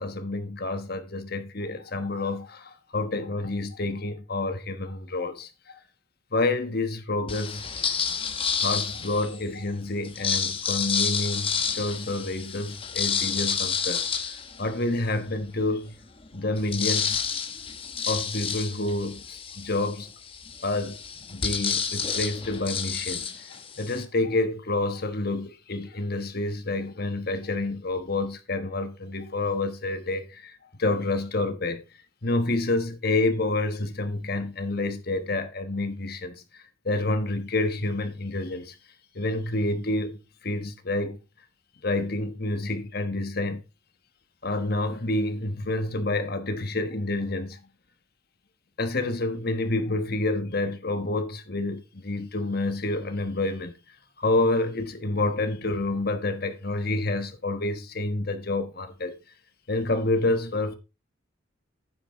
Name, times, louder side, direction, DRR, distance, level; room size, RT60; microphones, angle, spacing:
voice 1, 0.0-5.8 6.3-7.6 8.6-14.0 14.6-15.9 16.3-17.2 18.1-20.1 20.6-21.0 21.3-23.2 23.8-30.5 30.8-31.8 32.2-38.7 39.1-41.2 41.8-43.6 44.4-47.6 48.8-53.7 54.2-59.1 59.7-60.8, left 2 dB, 55° left, 1.3 m, -28 dB
sound 1, 7.3-9.4 10.0-15.2 15.7-15.8 16.0-24.0, left 6 dB, 30° left, 1.0 m, -30 dB
9.2 x 7.6 x 3.6 m
head